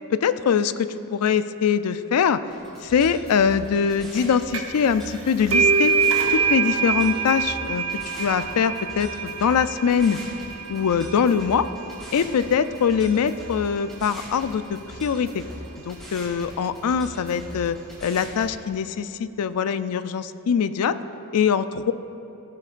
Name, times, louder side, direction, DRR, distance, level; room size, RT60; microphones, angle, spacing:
voice 1, 0.1-2.4 2.8-5.9 6.3-7.8 8.2-10.2 10.7-11.7 12.1-15.4 15.9-21.0 21.3-21.9, left 7 dB, 85° left, 13 dB, 0.4 m, -23 dB
sound 1, 2.5-18.5, equal, ahead, 2.7 m, -41 dB
sound 2, 4.5-4.9 5.1-12.4, right 5 dB, 65° right, 1.0 m, -25 dB
17.0 x 10.5 x 2.5 m, 2.9 s
head